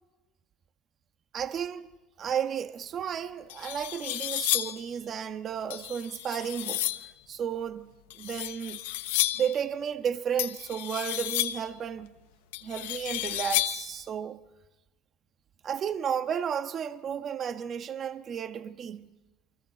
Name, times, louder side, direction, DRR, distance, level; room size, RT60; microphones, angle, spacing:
voice 1, 1.3-1.9 2.2-6.9 7.3-8.9 9.3-12.2 12.6-14.4 15.6-19.1, right 8 dB, 40° right, 1.3 m, -33 dB
sound 1, 3.0-3.1 3.5-4.9 5.7-7.1 8.1-9.6 10.4-11.8 12.5-13.9, left 15 dB, 90° left, 0.9 m, -31 dB
28.5 x 24.5 x 4.2 m
supercardioid pair, 120°, 0 cm